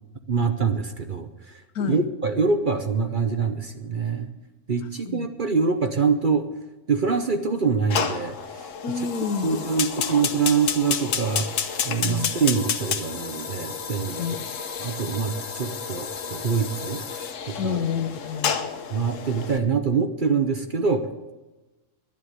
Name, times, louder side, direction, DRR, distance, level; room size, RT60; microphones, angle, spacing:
voice 1, 0.3-4.3 4.7-6.5 6.9-8.7 9.4-14.2 14.8-17.0 17.5-17.8 18.9-21.1, right 5 dB, 45° right, 7 dB, 0.8 m, -25 dB
voice 2, 1.7-2.0 5.0-5.3 8.8-9.6 12.0-12.3 14.2-14.5 17.6-18.6, left 6 dB, 85° left, 10 dB, 1.4 m, -29 dB
Fire, 7.9-19.6, left 7 dB, 60° left, 1.2 m, -30 dB
10.5 x 10.5 x 8.2 m, 1.1 s
omnidirectional pair, 1.6 m